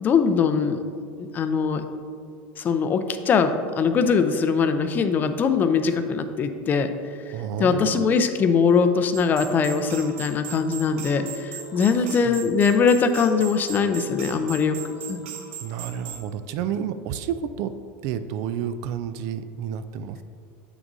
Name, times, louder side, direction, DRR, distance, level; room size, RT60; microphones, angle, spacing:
voice 1, 0.0-0.8 1.2-1.8 2.6-6.9 7.3-7.4 7.6-14.8 15.1-15.2, left 5 dB, 30° left, 9 dB, 0.4 m, -21 dB
voice 2, 7.3-8.2 11.7-11.8 12.2-12.4 15.6-17.8 18.0-20.2, right 8 dB, 55° right, 11 dB, 0.3 m, -30 dB
sound 1, 9.1-16.3, right 7 dB, 80° right, 0.7 m, -38 dB
7.4 x 6.0 x 2.6 m, 2.2 s
supercardioid pair, 130°, 6 cm